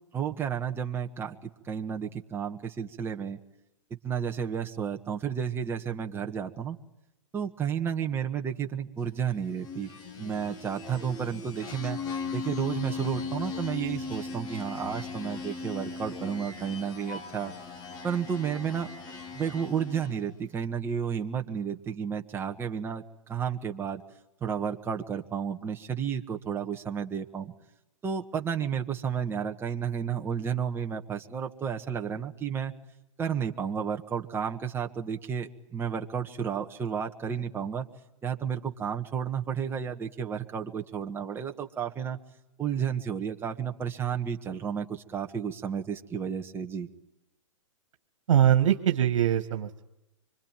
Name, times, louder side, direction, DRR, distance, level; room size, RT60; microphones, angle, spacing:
voice 1, 0.1-3.4 4.0-6.8 7.3-9.9 10.2-12.0 12.3-17.5 18.0-18.9 19.3-24.0 24.4-27.5 28.0-32.7 33.2-37.9 38.2-42.2 42.6-46.9, right 7 dB, 15° right, 3 dB, 1.6 m, -32 dB
sound 1, 9.4-20.3, left 5 dB, 25° left, 2.1 m, -38 dB
voice 2, 48.3-49.8, right 10 dB, 70° right, 6 dB, 1.9 m, -22 dB
25.5 x 25.0 x 9.1 m, 0.91 s
hypercardioid pair, 140°, 16 cm